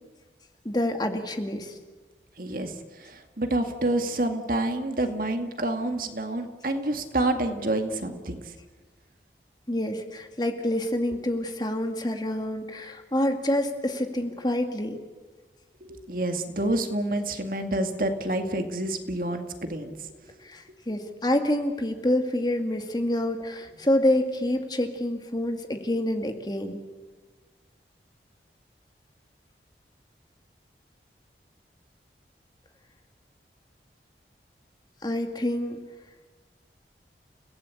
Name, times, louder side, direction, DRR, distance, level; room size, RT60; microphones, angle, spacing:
voice 1, 0.6-1.8 9.7-15.0 20.4-26.8 35.0-35.8, left 1 dB, 25° left, 5 dB, 2.1 m, -27 dB
voice 2, 2.4-8.4 15.8-20.0, right 1 dB, 50° right, 6 dB, 2.1 m, -28 dB
30.0 x 17.5 x 8.4 m, 1.3 s
head